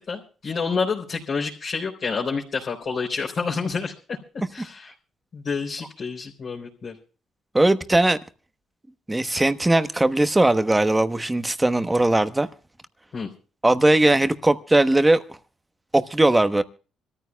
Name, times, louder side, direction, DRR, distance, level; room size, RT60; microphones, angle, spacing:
voice 1, 0.1-4.9 5.3-6.9 13.1-13.3, left 5 dB, 50° left, 3.9 m, -29 dB
voice 2, 7.5-8.2 9.1-12.5 13.6-15.2 15.9-16.6, right 2 dB, 15° right, 1.1 m, -19 dB
26.0 x 14.0 x 2.3 m
cardioid pair, 90°, 0 cm